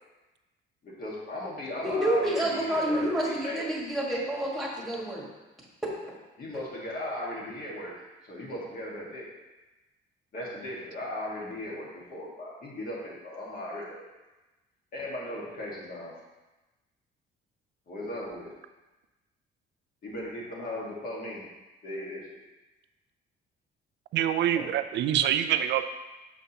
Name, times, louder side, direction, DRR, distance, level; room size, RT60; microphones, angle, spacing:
voice 1, 0.8-3.7 6.4-7.9 8.2-9.3 10.3-14.0 14.9-16.2 17.9-18.5 20.0-21.5 21.8-22.4 24.6-24.7, left 1 dB, 45° left, -4 dB, 1.7 m, -37 dB
voice 2, 1.8-5.2, right 1 dB, ahead, -5 dB, 1.5 m, -28 dB
voice 3, 24.1-25.8, right 10 dB, 60° right, 10 dB, 0.4 m, -25 dB
6.7 x 5.1 x 2.9 m, 1.1 s
cardioid pair, 135°, 20 cm